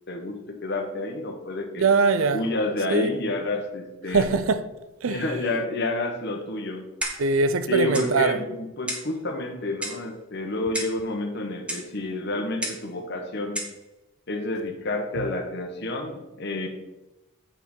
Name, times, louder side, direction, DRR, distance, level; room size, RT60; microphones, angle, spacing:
voice 1, 0.1-1.9 2.3-4.3 5.1-6.9 7.7-13.6 14.3-16.7, left 2 dB, 50° left, 1.2 m, -29 dB
voice 2, 1.8-2.4 2.9-3.2 4.1-4.7 5.0-5.2 7.2-8.4 15.2-15.3, right 4 dB, 70° right, 0.5 m, -22 dB
Clock, 7.0-7.4 7.9-8.1 8.9-9.1 9.8-10.1 10.7-11.0 11.7-11.9 12.6-12.9 13.5-13.8, right 1 dB, 5° right, 1.0 m, -32 dB
8.1 x 5.0 x 5.4 m
head